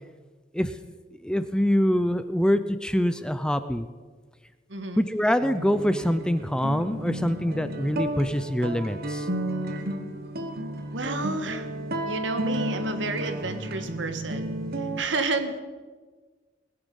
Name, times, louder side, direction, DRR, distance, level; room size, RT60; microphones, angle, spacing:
voice 1, 1.2-3.9 5.0-9.3, equal, 5° left, 11 dB, 0.5 m, -24 dB
voice 2, 4.7-5.0 10.9-11.7 12.0-14.5 15.0-15.6, right 3 dB, 75° right, 8 dB, 1.6 m, -30 dB
sound 1, 5.4-15.0, right 1 dB, 55° right, 1.2 m, -32 dB
20.0 x 10.5 x 5.4 m, 1.4 s
head